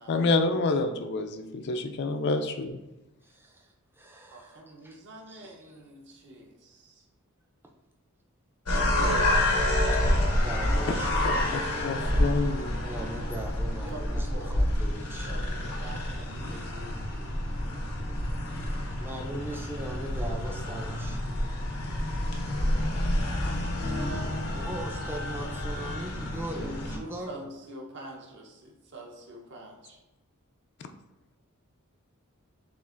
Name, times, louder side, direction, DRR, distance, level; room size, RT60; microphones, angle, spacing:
voice 1, 0.1-2.8 11.2-12.8, left 3 dB, 50° left, 7 dB, 0.4 m, -28 dB
voice 2, 3.2-5.0 5.3-5.8 9.9-10.0 10.4-11.6 12.7-15.4 18.4-21.3 24.3-27.5, right 1 dB, 10° right, 1 dB, 0.4 m, -40 dB
voice 3, 4.3-7.0 13.8-14.8 15.1-17.5 25.8-25.9 26.6-30.0, right 1 dB, 55° right, 1 dB, 0.8 m, -46 dB
sound 1, 8.7-27.0, left 1 dB, 90° left, 0.8 m, -28 dB
7.0 x 2.5 x 2.4 m, 1.0 s
head